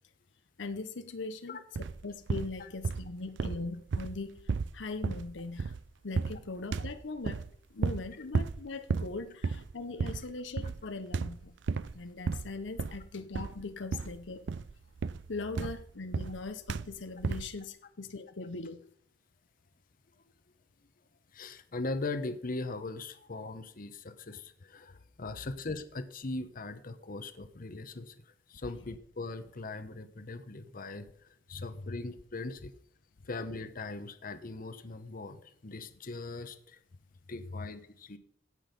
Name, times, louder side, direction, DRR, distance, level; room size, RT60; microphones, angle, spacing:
voice 1, 0.6-1.6 2.0-5.7 6.0-7.4 7.7-11.6 11.9-14.5 15.3-18.8 31.5-31.9, left 3 dB, 75° left, 10 dB, 0.8 m, -40 dB
sound 1, 1.8-2.0 2.3-3.1 3.4-5.9 6.2-6.5 6.7-7.5 7.8-8.1 8.3-8.6 8.9-9.2 9.4-9.7 10.0-10.3 10.6-10.9 11.1-11.9 12.3-13.1 13.3-13.6 13.9-14.2 14.5-16.4 16.7-16.9 17.2-17.5, right 4 dB, 70° right, 0.5 m, -33 dB
voice 2, 21.3-32.7 33.2-36.8 37.3-38.2, left 3 dB, 50° left, 11 dB, 0.9 m, -40 dB
16.5 x 6.3 x 5.3 m, 0.64 s
head